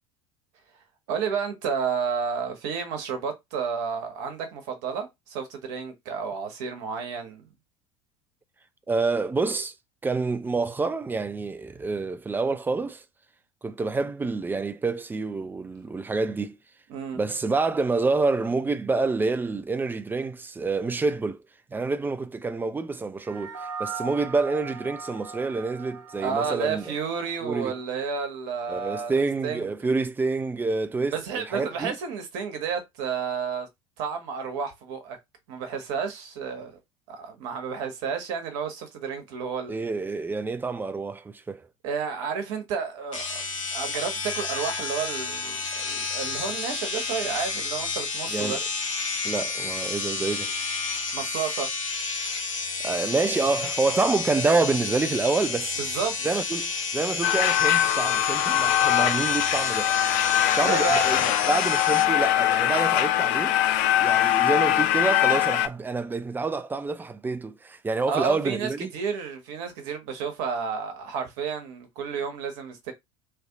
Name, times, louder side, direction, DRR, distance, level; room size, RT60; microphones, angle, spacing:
voice 1, 1.1-7.5 16.9-17.2 26.2-29.7 31.1-33.7 34.0-35.2 35.5-36.7 37.1-39.8 41.8-43.4 43.7-48.6 51.1-51.7 55.8-56.2 60.6-61.0 68.1-72.9, right 6 dB, 55° right, 1.2 m, -31 dB
voice 2, 8.9-9.7 10.0-13.0 13.6-16.6 17.1-21.4 21.7-27.0 27.4-27.8 28.7-32.0 39.7-41.7 48.3-48.6 49.2-50.5 52.8-55.8 56.2-59.9 60.6-63.6 64.0-68.9, right 3 dB, 10° right, 0.4 m, -27 dB
sound 1, 23.2-27.8, right 5 dB, 80° right, 0.5 m, -39 dB
sound 2, 43.1-62.0, left 4 dB, 80° left, 0.9 m, -31 dB
sound 3, 57.2-65.7, left 12 dB, 50° left, 0.4 m, -22 dB
3.2 x 2.7 x 3.5 m
figure-of-eight pair, 70°, 16 cm